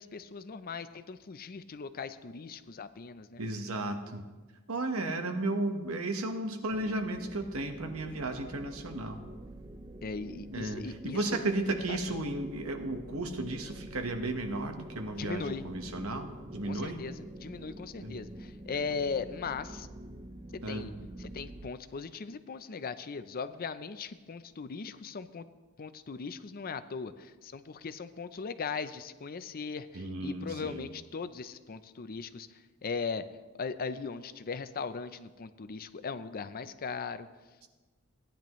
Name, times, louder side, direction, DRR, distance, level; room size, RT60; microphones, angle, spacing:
voice 1, 0.0-3.4 10.0-11.4 11.9-12.2 15.1-15.6 16.6-19.9 20.5-20.9 21.2-25.5 25.8-33.3 33.6-37.3, left 5 dB, 45° left, 12 dB, 0.5 m, -39 dB
voice 2, 3.4-4.2 4.7-9.2 10.5-17.0 18.0-18.1 20.6-20.9 29.9-30.9, right 2 dB, 80° right, 6 dB, 1.2 m, -34 dB
sound 1, 6.7-21.7, right 1 dB, 20° right, 0.5 m, -47 dB
16.5 x 10.0 x 3.1 m, 1.3 s
head